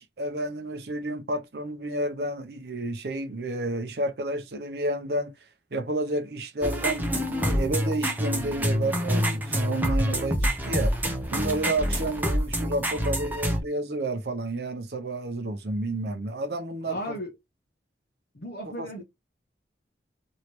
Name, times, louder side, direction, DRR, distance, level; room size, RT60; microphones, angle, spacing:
voice 1, 0.0-5.3 5.7-10.9 11.3-17.2 18.6-19.0, right 1 dB, 65° right, 0.6 m, -30 dB
sound 1, 6.6-13.6, equal, 10° right, 0.6 m, -27 dB
voice 2, 16.8-17.3 18.3-19.0, equal, 65° left, 1.0 m, -35 dB
3.1 x 2.8 x 2.9 m
head